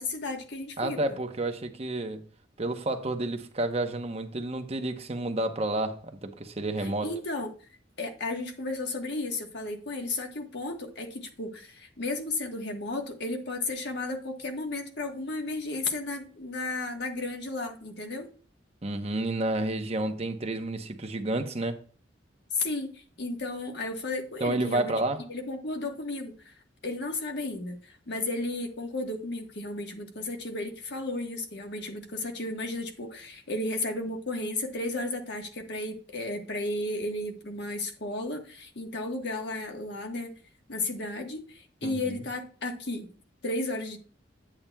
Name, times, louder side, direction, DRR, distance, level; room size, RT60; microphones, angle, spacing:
voice 1, 0.0-1.2 6.8-7.5 8.0-18.3 22.5-24.9 25.3-26.5 26.8-40.4 40.7-43.1 43.4-44.0, left 2 dB, 65° left, 1.3 m, -34 dB
voice 2, 0.8-2.2 2.6-7.1 18.8-21.8 24.4-25.2 41.8-42.2, right 2 dB, 35° right, 0.8 m, -30 dB
8.6 x 8.6 x 2.3 m
head